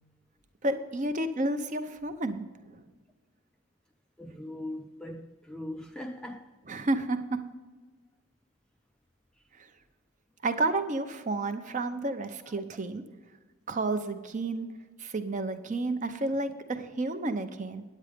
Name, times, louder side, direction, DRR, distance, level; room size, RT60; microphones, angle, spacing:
voice 1, 0.6-2.8 6.7-7.4 9.6-9.7 10.4-13.0 13.7-14.7 15.0-17.8, right 2 dB, 35° right, 0.6 m, -31 dB
voice 2, 4.2-6.5 12.5-12.6, left 1 dB, 5° left, 0.3 m, -40 dB
9.5 x 8.6 x 5.1 m
head